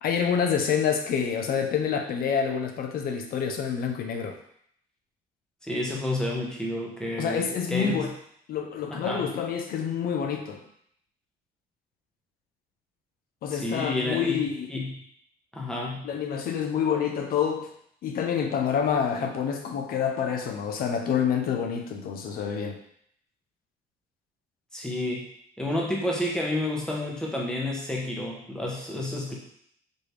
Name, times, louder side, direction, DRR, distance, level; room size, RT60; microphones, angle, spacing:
voice 1, 0.0-4.4 7.2-8.1 8.5-10.6 13.4-14.7 16.0-17.7 18.0-22.8, left 7 dB, 60° left, 4 dB, 0.7 m, -27 dB
voice 2, 5.6-8.1 8.9-9.3 13.5-14.4 14.7-14.9 15.5-16.1 24.7-25.3 25.6-29.4, left 1 dB, 5° left, -2 dB, 1.0 m, -30 dB
4.3 x 3.2 x 3.3 m, 0.67 s
cardioid pair, 110°, 17 cm